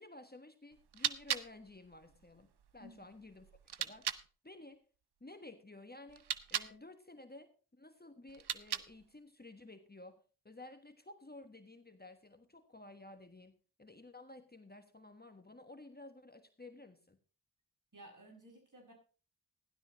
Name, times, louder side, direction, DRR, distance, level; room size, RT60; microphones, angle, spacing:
voice 1, 0.0-3.5 3.8-4.9 5.2-6.2 6.5-17.2, left 2 dB, 25° left, 1.4 m, -54 dB
sound 1, 0.7-4.3 6.1-6.8 8.3-9.1, right 8 dB, 70° right, 0.8 m, -40 dB
voice 2, 17.9-18.9, right 1 dB, 50° right, 6.5 m, -55 dB
16.0 x 11.5 x 3.1 m
cardioid pair, 45°, 41 cm